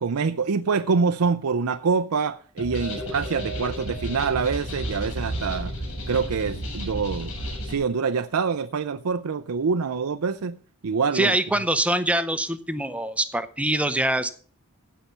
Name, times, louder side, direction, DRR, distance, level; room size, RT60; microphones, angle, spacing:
voice 1, 0.0-5.7 6.1-7.3 7.6-11.4, right 5 dB, 80° right, 0.5 m, -25 dB
sound 1, 2.6-7.8, equal, 65° left, 7.9 m, -32 dB
voice 2, 11.1-14.3, right 1 dB, 5° right, 0.6 m, -24 dB
15.5 x 5.7 x 6.8 m
head